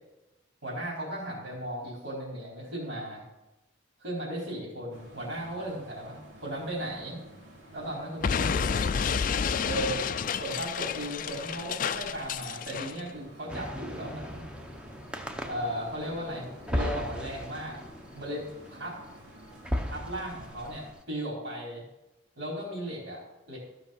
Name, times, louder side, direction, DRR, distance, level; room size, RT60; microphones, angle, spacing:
voice 1, 0.6-3.2 4.0-7.2 7.7-8.9 9.6-10.0 10.4-14.4 15.4-17.8 18.1-18.4 18.7-18.9 19.8-21.8 22.4-23.6, right 1 dB, 65° right, -5 dB, 4.0 m, -36 dB
sound 1, 4.9-20.9, right 1 dB, 85° right, 2.5 m, -51 dB
Explosion, 8.2-13.0, left 6 dB, 45° left, 0.4 m, -30 dB
sound 2, 13.5-20.9, left 1 dB, 5° right, 0.8 m, -37 dB
15.0 x 5.4 x 5.8 m, 0.98 s
head